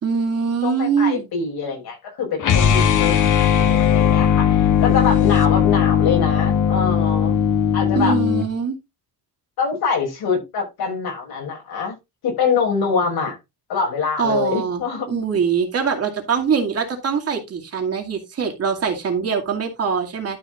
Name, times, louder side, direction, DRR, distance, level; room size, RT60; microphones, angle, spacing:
voice 1, 0.0-1.3 7.9-8.8 14.2-20.4, right 6 dB, 40° right, 2.4 m, -23 dB
voice 2, 0.6-7.4 7.7-8.2 9.6-11.9 12.2-13.4 13.7-15.2, left 5 dB, 75° left, 5.6 m, -24 dB
sound 1, 2.4-8.5, left 8 dB, 50° left, 1.5 m, -18 dB
12.0 x 4.8 x 3.8 m
cardioid pair, 170°, 38 cm